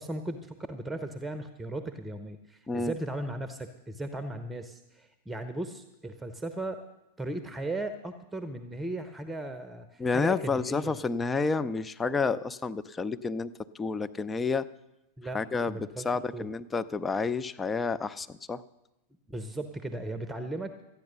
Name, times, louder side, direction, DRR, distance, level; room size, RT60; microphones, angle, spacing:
voice 1, 0.0-6.8 7.2-10.9 15.2-15.4 15.7-16.1 16.3-16.5 19.3-20.7, right 1 dB, 10° right, 9 dB, 0.9 m, -36 dB
voice 2, 10.0-14.7 15.3-15.8 16.0-18.6, left 4 dB, 15° left, 12 dB, 0.5 m, -30 dB
13.5 x 9.4 x 6.7 m, 0.93 s
figure-of-eight pair, 90°, 0 cm